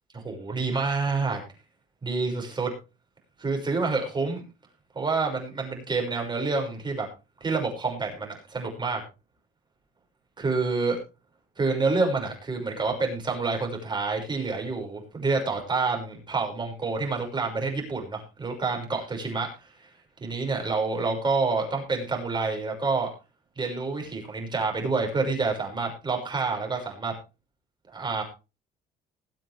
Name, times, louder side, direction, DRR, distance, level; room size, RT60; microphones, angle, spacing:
voice 1, 0.1-1.4 2.0-2.7 3.4-4.4 4.9-7.1 7.4-9.0 10.4-11.0 11.6-19.7 20.2-23.1 23.6-27.1 27.9-28.2, right 4 dB, 25° right, 2 dB, 6.0 m, -28 dB
21.0 x 7.8 x 3.5 m, 0.30 s
cardioid pair, 110°, 17 cm